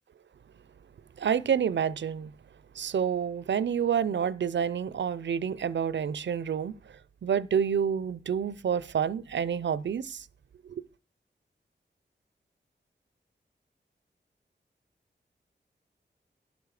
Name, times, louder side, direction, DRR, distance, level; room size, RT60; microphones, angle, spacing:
voice 1, 1.2-2.3 2.8-6.8 7.2-10.3 10.6-10.8, right 7 dB, 80° right, 0.5 m, -28 dB
10.5 x 8.3 x 4.8 m
wide cardioid pair, 65°, 19 cm